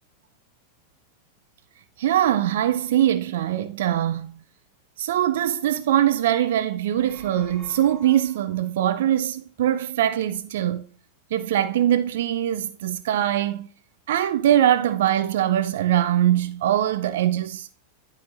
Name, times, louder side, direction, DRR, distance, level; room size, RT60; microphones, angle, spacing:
voice 1, 2.0-4.4 5.0-10.9 11.3-13.7 14.1-17.7, right 11 dB, 55° right, 0.3 m, -22 dB
sound 1, 6.8-8.7, right 2 dB, 15° right, 2.5 m, -48 dB
11.5 x 4.2 x 2.4 m
figure-of-eight pair, 90°, 0 cm